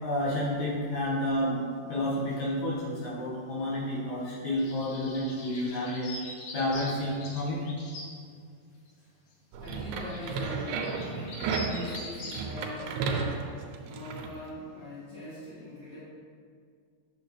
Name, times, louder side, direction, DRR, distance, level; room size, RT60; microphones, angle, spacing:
voice 1, 0.0-6.1 6.5-7.6, left 1 dB, 60° left, -8 dB, 3.1 m, -30 dB
sound 1, 4.6-8.1 9.7-12.4, left 2 dB, 80° left, 3.0 m, -43 dB
sound 2, 9.5-14.3, right 4 dB, 85° right, 2.6 m, -33 dB
voice 2, 9.6-10.9 11.7-13.5 13.8-16.0, left 1 dB, 40° right, -12 dB, 1.6 m, -42 dB
9.0 x 6.6 x 3.3 m, 2.2 s
omnidirectional pair, 4.2 m